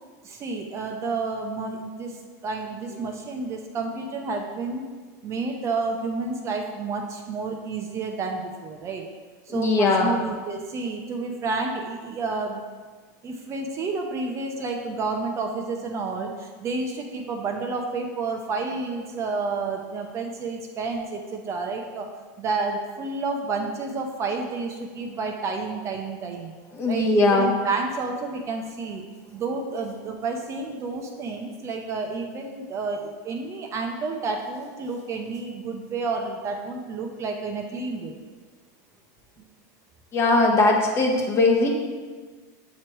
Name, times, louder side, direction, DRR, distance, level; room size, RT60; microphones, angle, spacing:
voice 1, 0.2-2.2 2.4-4.9 5.2-9.0 9.5-12.6 13.2-22.1 22.4-26.5 26.9-29.0 29.3-38.2, right 3 dB, 30° right, 2 dB, 0.6 m, -30 dB
voice 2, 9.5-10.2 26.7-27.5 40.1-41.7, left 2 dB, 25° left, 0 dB, 1.0 m, -20 dB
7.4 x 3.1 x 4.5 m, 1.4 s
supercardioid pair, 130°, 10 cm